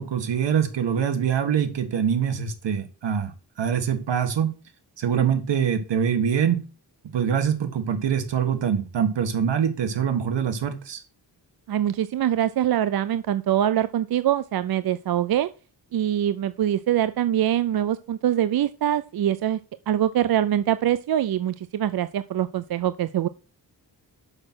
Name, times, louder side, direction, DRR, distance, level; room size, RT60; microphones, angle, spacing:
voice 1, 0.0-3.3 3.6-4.5 5.0-6.6 7.1-11.0, right 8 dB, 80° right, 8 dB, 1.7 m, -24 dB
voice 2, 11.7-15.5 15.9-19.6 19.9-23.3, right 11 dB, 60° right, 14 dB, 0.5 m, -23 dB
6.6 x 6.0 x 6.1 m, 0.36 s
wide cardioid pair, 105°, 43 cm